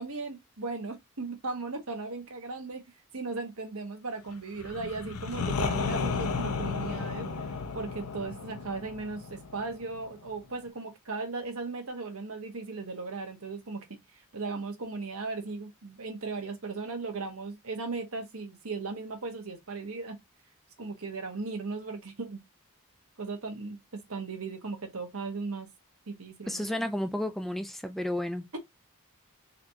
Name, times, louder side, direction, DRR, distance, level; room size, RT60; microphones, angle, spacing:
voice 1, 0.0-2.8 3.1-7.3 7.7-13.8 14.3-20.2 20.8-22.4 23.2-25.7 26.1-26.9, right 3 dB, 80° right, 1.3 m, -37 dB
sound 1, 4.6-10.3, left 4 dB, 85° left, 0.6 m, -33 dB
voice 2, 26.5-28.4, left 1 dB, ahead, 0.4 m, -32 dB
4.1 x 2.9 x 2.8 m
head